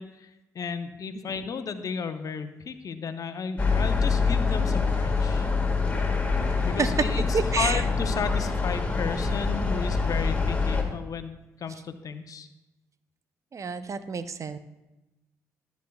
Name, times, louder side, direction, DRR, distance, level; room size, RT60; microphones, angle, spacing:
voice 1, 0.0-5.5 6.6-12.5, left 6 dB, 55° left, 10 dB, 0.7 m, -34 dB
sound 1, 3.6-10.8, left 4 dB, 20° left, 1.8 m, -25 dB
voice 2, 7.3-7.8 13.5-14.6, right 5 dB, 45° right, 11 dB, 0.6 m, -29 dB
13.0 x 8.1 x 2.3 m, 0.99 s
hypercardioid pair, 45°, 7 cm